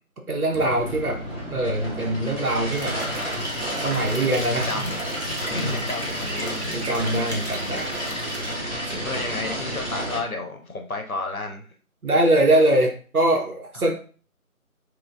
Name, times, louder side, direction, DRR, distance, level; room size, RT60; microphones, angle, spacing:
voice 1, 0.3-1.2 1.5-3.0 3.8-4.9 5.5-5.8 6.7-8.0 8.9-9.1 12.0-13.9, right 1 dB, 75° right, 1 dB, 0.8 m, -23 dB
sound 1, 0.5-10.2, equal, 30° right, 1.3 m, -30 dB
sound 2, 2.7-8.5, right 1 dB, 45° right, 0.8 m, -39 dB
voice 2, 4.5-5.0 5.4-6.9 9.0-11.7, left 3 dB, 70° left, 4 dB, 0.7 m, -32 dB
4.3 x 2.2 x 2.4 m, 0.40 s
figure-of-eight pair, 170°, 44 cm